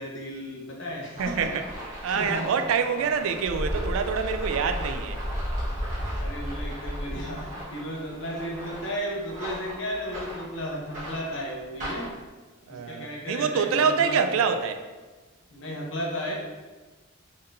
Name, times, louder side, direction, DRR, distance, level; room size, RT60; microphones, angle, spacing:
voice 1, 0.0-1.5 2.1-2.6 2.9-3.1 5.8-12.1 12.7-14.5 15.5-16.3, equal, 60° left, -1 dB, 0.8 m, -34 dB
sound 1, 1.2-12.3, equal, 40° right, 1.3 m, -34 dB
voice 2, 1.2-1.6 2.0-5.2 12.7-14.8, right 6 dB, 75° right, 8 dB, 0.3 m, -26 dB
3.8 x 3.6 x 2.6 m, 1.3 s
head